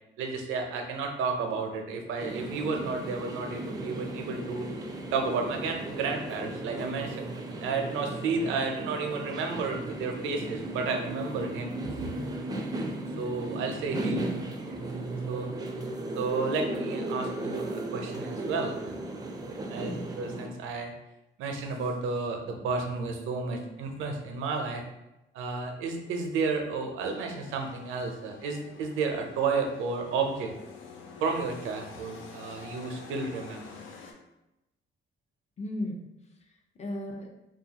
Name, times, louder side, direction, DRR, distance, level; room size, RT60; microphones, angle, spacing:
voice 1, 0.2-4.7 5.1-7.3 7.6-11.7 13.2-14.2 15.3-15.5 16.1-18.9 19.7-20.9 21.4-24.8 25.3-30.5 31.2-33.8, right 4 dB, 90° right, 3 dB, 0.5 m, -32 dB
sound 1, 2.2-20.5, right 2 dB, 20° right, 0.4 m, -36 dB
voice 2, 14.0-14.5 19.8-20.1 35.6-37.3, left 1 dB, 35° left, 1 dB, 0.6 m, -37 dB
sound 2, 27.0-34.1, left 5 dB, 80° left, 0.5 m, -48 dB
2.7 x 2.3 x 2.8 m, 0.92 s
cardioid pair, 90°, 20 cm